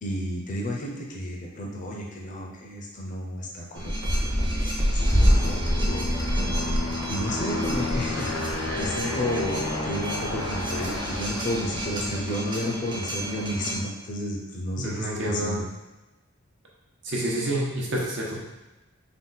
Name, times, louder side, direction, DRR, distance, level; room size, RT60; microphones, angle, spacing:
voice 1, 0.0-6.2 6.5-6.7 7.1-15.6, left 1 dB, 40° left, -1 dB, 0.5 m, -32 dB
sound 1, 3.8-13.8, equal, 25° right, 0.6 m, -27 dB
Aircraft, 5.0-12.3, left 2 dB, 85° left, 0.7 m, -32 dB
voice 2, 14.8-15.6 17.0-18.4, right 1 dB, 65° right, -4 dB, 0.9 m, -28 dB
3.8 x 2.2 x 3.9 m, 1.1 s
head